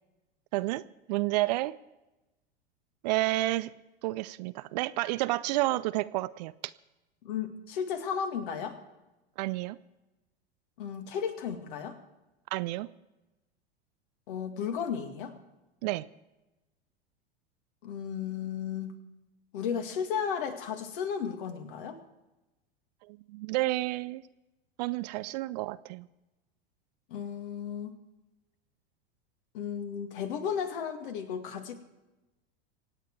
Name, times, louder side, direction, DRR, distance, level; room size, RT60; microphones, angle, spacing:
voice 1, 0.5-0.8 1.1-1.7 3.0-3.7 4.0-6.5 9.4-9.8 12.5-12.9 15.8-16.0 23.1-24.2 24.8-26.1, right 19 dB, 45° right, 17 dB, 0.5 m, -30 dB
voice 2, 7.2-8.8 10.8-12.0 14.3-15.3 17.8-19.0 19.5-22.0 27.1-27.9 29.5-31.7, left 7 dB, 55° left, 7 dB, 2.1 m, -34 dB
25.5 x 9.1 x 4.7 m, 1.0 s
figure-of-eight pair, 90°, 32 cm